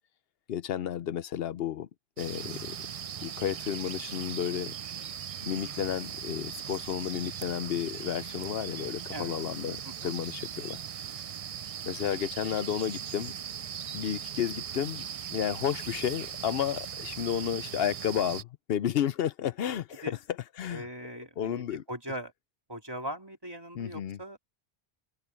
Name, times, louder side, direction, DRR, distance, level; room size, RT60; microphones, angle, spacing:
voice 1, 0.5-1.9 2.2-2.8 3.2-4.7 5.4-10.8 11.0-11.2 11.8-13.3 13.9-20.1 20.6-20.9 21.4-21.8 23.8-24.2, left 9 dB, 70° left, 0.8 m, -32 dB
sound 1, 2.2-18.4, right 8 dB, 55° right, 0.4 m, -39 dB
voice 2, 20.7-22.3 22.7-24.4, right 1 dB, 20° right, 3.4 m, -40 dB
omnidirectional pair, 1.1 m